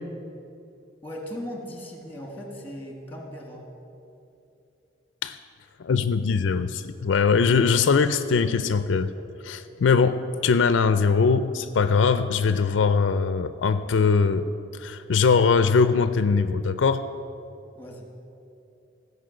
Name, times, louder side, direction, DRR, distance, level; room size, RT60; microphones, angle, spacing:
voice 1, 1.0-3.7 17.8-18.1, equal, 10° left, 1 dB, 1.8 m, -38 dB
voice 2, 5.8-9.1 9.4-14.5 14.8-17.0, left 5 dB, 75° left, 12 dB, 0.4 m, -21 dB
16.0 x 5.5 x 7.7 m, 2.7 s
head